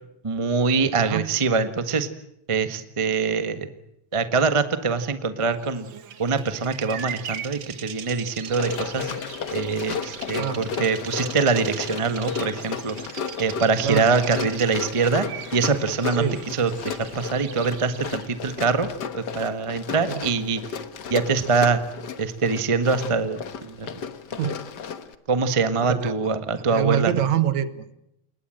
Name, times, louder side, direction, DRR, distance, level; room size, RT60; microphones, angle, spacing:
voice 1, 0.2-2.1 2.5-3.7 4.1-5.9 6.2-9.1 9.5-13.0 13.4-15.3 15.5-18.9 19.1-20.6 21.1-21.8 22.2-23.9 24.3-24.4 25.3-27.2, right 4 dB, 25° right, 9 dB, 0.6 m, -24 dB
Bird vocalization bird call bird song, 5.6-18.3, right 8 dB, 50° right, 1.6 m, -40 dB
Run, 8.5-25.1, left 6 dB, 50° left, 1.4 m, -34 dB
voice 2, 25.8-26.1 26.7-27.9, right 9 dB, 70° right, 12 dB, 2.6 m, -25 dB
28.0 x 21.5 x 7.8 m, 0.81 s
omnidirectional pair, 3.3 m